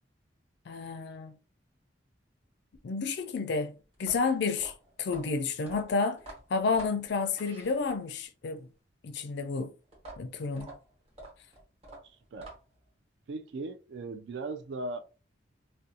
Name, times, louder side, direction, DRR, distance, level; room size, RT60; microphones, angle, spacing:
voice 1, 0.7-1.3 2.8-3.7 4.0-4.7 5.0-6.2 6.5-8.7 9.0-9.7 10.2-10.7, left 4 dB, 60° left, 0.4 m, -30 dB
sound 1, 3.9-8.2 9.9-12.9, right 2 dB, 35° right, 1.1 m, -48 dB
voice 2, 12.0-12.5 13.3-15.0, right 2 dB, 65° right, 0.4 m, -38 dB
2.5 x 2.1 x 2.7 m
head